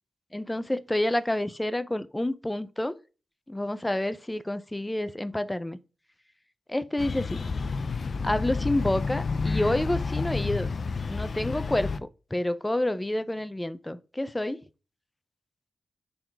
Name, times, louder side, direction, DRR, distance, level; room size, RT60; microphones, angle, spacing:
voice 1, 0.3-3.0 3.5-5.8 6.7-7.5 8.2-10.7 11.1-14.6, left 1 dB, 15° left, 0.6 m, -29 dB
sound 1, 7.0-12.0, left 4 dB, 60° left, 0.5 m, -30 dB
6.9 x 3.8 x 4.8 m
cardioid pair, 70°, 0 cm